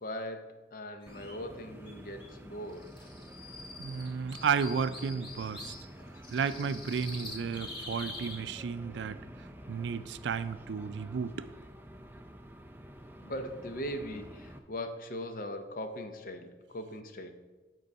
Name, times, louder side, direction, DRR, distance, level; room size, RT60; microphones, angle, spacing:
voice 1, 0.0-2.9 4.3-4.4 6.0-6.1 9.6-9.7 13.2-17.3, equal, 50° left, 7 dB, 0.6 m, -40 dB
sound 1, 1.0-1.3 1.9-2.0 2.2-2.3 2.7-5.8 6.2-8.4, left 2 dB, 25° left, 1.3 m, -45 dB
sound 2, 1.1-14.6, equal, 10° right, 0.4 m, -49 dB
voice 2, 3.8-5.7 6.3-9.2 9.7-11.5, right 6 dB, 85° right, 13 dB, 0.4 m, -33 dB
8.1 x 3.8 x 5.3 m, 1.2 s
head